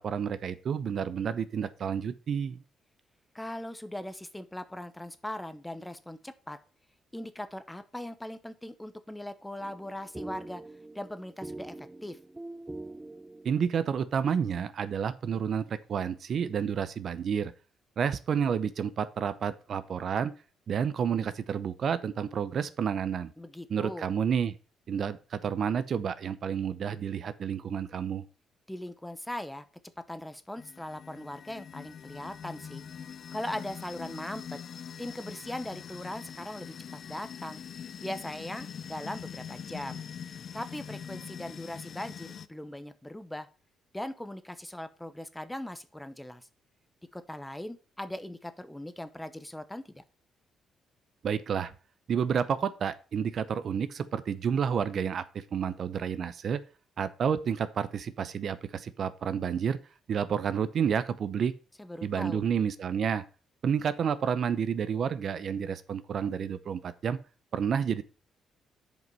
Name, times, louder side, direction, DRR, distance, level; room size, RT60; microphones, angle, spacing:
voice 1, 0.0-2.6 13.4-17.5 18.0-20.3 20.7-23.3 23.7-24.5 24.9-28.2 51.2-51.7 52.1-56.6 57.0-59.8 60.1-61.5 62.0-63.2 63.6-67.2 67.5-68.0, right 7 dB, 55° right, 13 dB, 0.7 m, -30 dB
voice 2, 3.3-6.6 7.1-10.6 10.9-12.2 23.4-24.1 28.7-29.6 30.1-32.8 33.3-34.6 35.0-36.7 37.1-37.6 38.0-40.0 40.5-43.5 43.9-46.5 47.1-50.0 61.8-62.4, left 1 dB, 10° left, 11 dB, 0.9 m, -39 dB
sound 1, 9.6-13.9, right 2 dB, 15° right, 0.6 m, -44 dB
sound 2, 30.6-42.5, left 7 dB, 55° left, 0.6 m, -43 dB
7.7 x 5.2 x 5.4 m, 0.35 s
cardioid pair, 90°, 0 cm